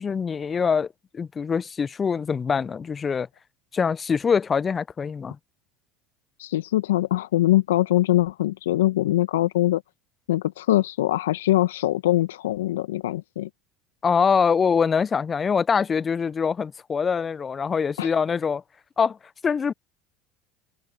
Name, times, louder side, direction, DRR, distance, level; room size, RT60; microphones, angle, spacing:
voice 1, 0.0-3.3 3.7-5.4 14.0-18.6 19.0-19.2 19.4-19.7, left 6 dB, 30° left, 0.7 m, -24 dB
voice 2, 6.4-9.8 10.3-13.5 18.0-18.1, left 15 dB, 80° left, 1.4 m, -22 dB
hypercardioid pair, 70°, 0 cm